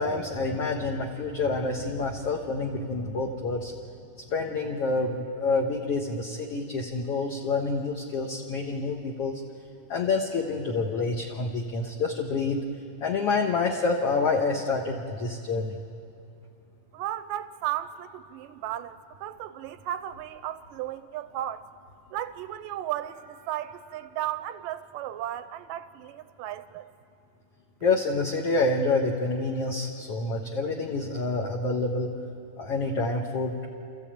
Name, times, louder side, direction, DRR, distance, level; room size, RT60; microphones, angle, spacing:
voice 1, 0.0-3.7 4.3-9.4 9.9-12.6 13.0-15.8 27.8-32.1 32.6-33.7, left 3 dB, 55° left, 1.8 m, -27 dB
voice 2, 16.9-21.7 22.1-26.9, right 12 dB, 85° right, 2.4 m, -35 dB
29.5 x 14.5 x 8.8 m
omnidirectional pair, 3.9 m